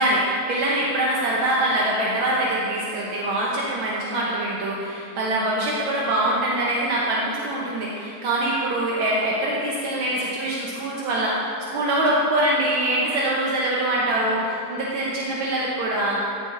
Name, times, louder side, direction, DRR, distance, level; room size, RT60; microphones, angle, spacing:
voice 1, 0.0-16.2, right 1 dB, 75° right, -4 dB, 1.8 m, -24 dB
13.5 x 7.1 x 3.3 m, 2.5 s
omnidirectional pair, 2.2 m